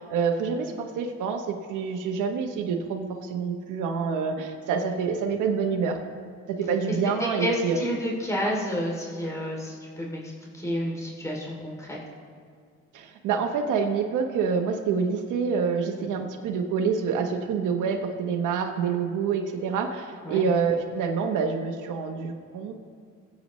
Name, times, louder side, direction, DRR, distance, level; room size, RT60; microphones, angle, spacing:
voice 1, 0.0-6.0 6.5-7.8 12.9-22.7, right 6 dB, 90° right, 3 dB, 1.0 m, -27 dB
voice 2, 7.4-12.0 20.2-20.4, equal, 10° left, -3 dB, 2.9 m, -30 dB
22.0 x 8.5 x 3.1 m, 2.1 s
cardioid pair, 90°, 30 cm